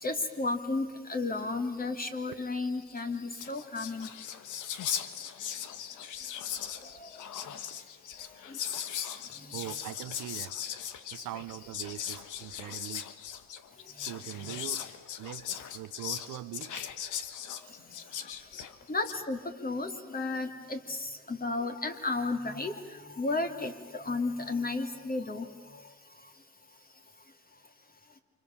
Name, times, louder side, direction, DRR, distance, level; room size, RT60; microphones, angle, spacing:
voice 1, 0.0-4.1 7.0-7.1 8.5-8.6 9.4-9.7 14.4-14.6 18.9-25.8, left 3 dB, 30° left, 3.1 m, -33 dB
Whispering, 3.0-3.1 3.3-19.2, left 9 dB, 80° left, 1.6 m, -39 dB
voice 2, 9.5-10.6 11.1-13.1 14.0-14.8 15.2-16.8 18.6-18.7, right 14 dB, 85° right, 0.9 m, -42 dB
29.0 x 27.0 x 7.3 m
cardioid pair, 90°, 30 cm